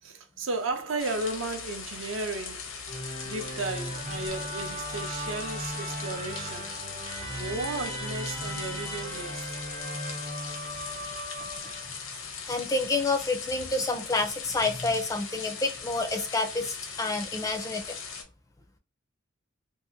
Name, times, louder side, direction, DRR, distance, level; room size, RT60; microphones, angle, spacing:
voice 1, 0.0-2.9 3.2-6.8 7.4-9.6, right 2 dB, 70° right, 0.6 m, -34 dB
sound 1, 1.0-18.2, left 5 dB, 80° left, 0.7 m, -39 dB
Musical instrument, 2.8-12.1, right 1 dB, 35° right, 0.7 m, -37 dB
voice 2, 12.5-18.0, left 3 dB, 15° left, 0.4 m, -29 dB
2.7 x 2.4 x 2.6 m
head